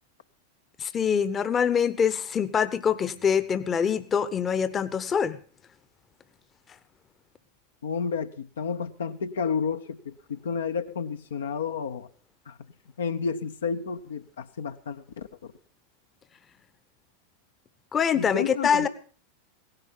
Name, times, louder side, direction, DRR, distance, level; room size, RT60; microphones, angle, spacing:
voice 1, 0.8-5.4 17.9-18.9, left 7 dB, 25° left, 15 dB, 0.9 m, -24 dB
voice 2, 7.8-12.1 12.5-12.6 13.0-15.5 18.1-18.9, left 6 dB, 65° left, 8 dB, 0.7 m, -31 dB
17.0 x 11.0 x 5.5 m, 0.41 s
figure-of-eight pair, 90°, 0 cm